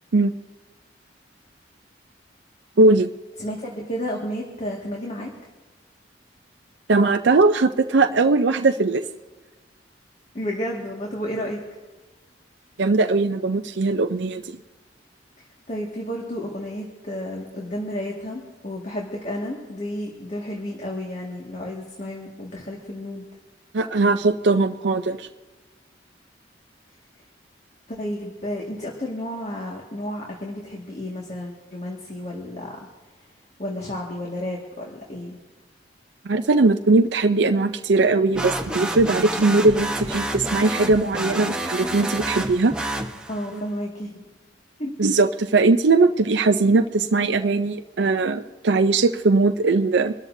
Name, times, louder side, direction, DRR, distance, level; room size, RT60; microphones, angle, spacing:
voice 1, 2.8-3.1 6.9-9.0 12.8-14.6 23.7-25.3 36.2-42.7 43.5-43.6 45.0-50.1, right 3 dB, 70° right, 7 dB, 0.6 m, -19 dB
voice 2, 3.4-5.3 10.3-11.6 15.4-23.3 27.9-32.8 33.6-35.4 43.3-44.3 44.8-45.0, left 1 dB, 40° left, -2 dB, 1.9 m, -32 dB
sound 1, 38.3-43.6, right 1 dB, 5° right, 1.0 m, -29 dB
24.5 x 13.0 x 2.7 m, 1.3 s
head